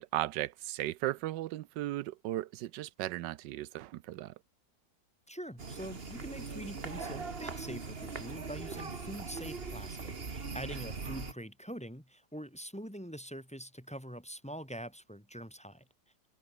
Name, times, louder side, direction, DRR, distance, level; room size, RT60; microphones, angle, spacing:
voice 1, 0.0-4.3, right 15 dB, 85° right, 1.3 m, -36 dB
voice 2, 5.3-15.8, equal, 5° left, 2.1 m, -44 dB
sound 1, 5.6-11.3, right 4 dB, 35° right, 1.9 m, -41 dB
open air
omnidirectional pair, 1.9 m